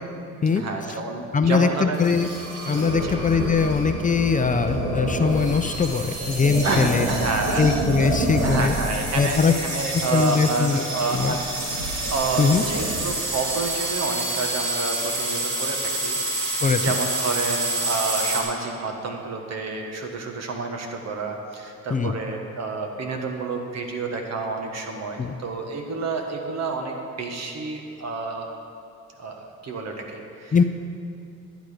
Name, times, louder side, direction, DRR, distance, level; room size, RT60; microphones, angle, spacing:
voice 1, 0.5-2.0 3.0-3.2 6.6-7.6 8.4-11.4 12.1-28.5 29.2-30.5, right 3 dB, 60° right, 3 dB, 1.6 m, -29 dB
voice 2, 1.3-2.3 2.7-7.1 7.6-8.7 9.2-9.5 9.9-10.8 11.1-11.4 12.4-12.6 16.6-16.8 21.9-22.1 25.2-25.3 30.5-30.6, left 5 dB, 25° left, 8 dB, 0.5 m, -21 dB
sound 1, 1.9-18.4, right 1 dB, 80° right, 2.5 m, -27 dB
12.0 x 9.3 x 5.1 m, 2.4 s
cardioid pair, 90°, 30 cm